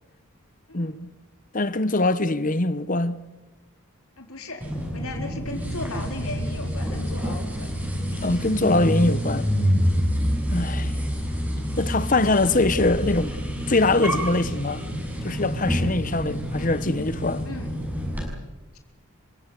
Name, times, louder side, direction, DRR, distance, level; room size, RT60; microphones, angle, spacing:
voice 1, 1.5-3.2 8.2-9.5 10.5-10.9 11.8-13.4 13.7-14.8 15.2-17.5, left 2 dB, 35° left, 1.0 m, -23 dB
voice 2, 4.2-4.6 4.9-7.7 16.2-16.4 17.4-17.7, left 2 dB, 75° left, 4.3 m, -36 dB
sound 1, 4.6-18.3, equal, 10° right, 6.6 m, -27 dB
29.0 x 16.0 x 8.4 m
head